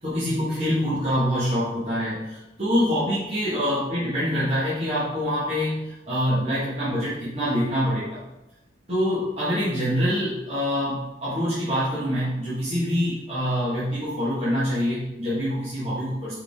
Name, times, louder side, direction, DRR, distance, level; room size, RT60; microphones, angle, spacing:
voice 1, 0.0-8.2 8.9-16.3, equal, 30° right, -10 dB, 1.5 m, -25 dB
5.6 x 4.9 x 3.5 m, 0.91 s
head